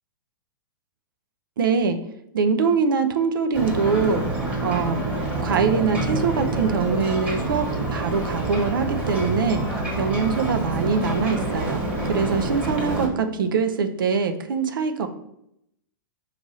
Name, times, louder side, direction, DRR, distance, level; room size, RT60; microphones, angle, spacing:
voice 1, 1.6-2.0 2.3-4.3 4.6-5.0 5.4-9.6 10.0-15.1, right 5 dB, 75° right, 8 dB, 0.6 m, -23 dB
Ocean, 3.5-13.1, right 2 dB, 15° right, 1.3 m, -27 dB
4.8 x 2.6 x 4.0 m, 0.78 s
hypercardioid pair, 120°, 11 cm